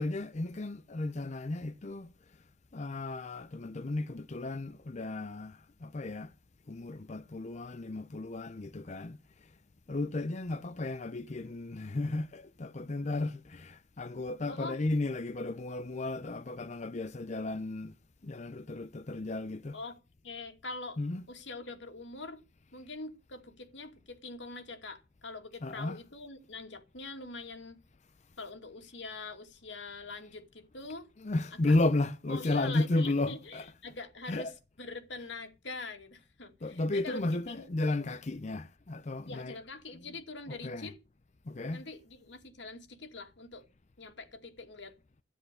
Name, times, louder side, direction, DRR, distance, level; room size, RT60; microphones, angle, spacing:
voice 1, 0.0-2.1 2.7-6.3 6.7-9.5 9.9-18.0 18.2-19.8 21.0-21.2 25.6-26.0 31.2-33.7 34.3-34.5 36.6-39.5 40.5-40.9 41.5-41.8, left 2 dB, 40° left, 0.6 m, -34 dB
voice 2, 14.5-14.8 19.7-20.0 20.2-21.0 21.3-22.4 22.7-27.8 28.4-31.1 31.6-31.8 32.3-37.2 37.5-37.7 39.3-41.0 41.7-43.6 44.0-44.9, left 3 dB, 85° left, 2.5 m, -44 dB
13.0 x 9.8 x 6.8 m
head